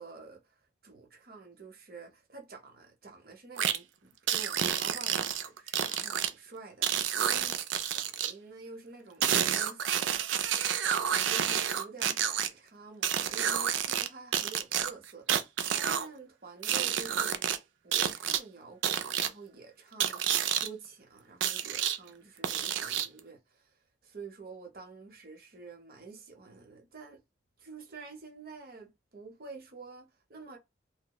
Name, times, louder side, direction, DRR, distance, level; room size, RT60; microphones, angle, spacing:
voice 1, 0.0-7.5 7.9-10.2 11.1-17.5 17.8-27.2 27.6-30.6, right 4 dB, 50° right, 0.7 m, -48 dB
sound 1, 3.6-3.8 4.3-6.3 6.8-8.3 9.2-12.5 13.0-14.1 14.3-16.1 16.6-17.6 17.9-18.4 18.8-19.3 20.0-20.7 21.4-22.0 22.4-23.2, right 9 dB, 80° right, 0.4 m, -29 dB
2.8 x 2.0 x 2.2 m
head